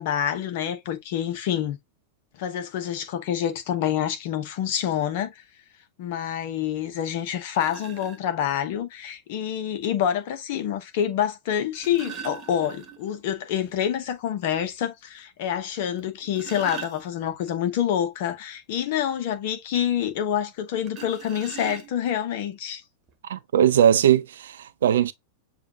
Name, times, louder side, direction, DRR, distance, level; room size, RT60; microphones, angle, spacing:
voice 1, 0.0-1.8 2.4-5.4 6.0-22.8, left 10 dB, 50° left, 0.9 m, -27 dB
sound 1, 6.9-7.0 7.5-8.2 9.6-9.7 11.5-13.2 13.5-13.6 14.1-14.2 14.7-14.8 16.0-17.5 20.9-22.2 23.1-23.2 23.5-23.8, right 7 dB, 30° right, 1.2 m, -41 dB
voice 2, 23.3-25.1, right 10 dB, 60° right, 0.4 m, -20 dB
7.0 x 2.5 x 2.8 m
figure-of-eight pair, 90°, 0 cm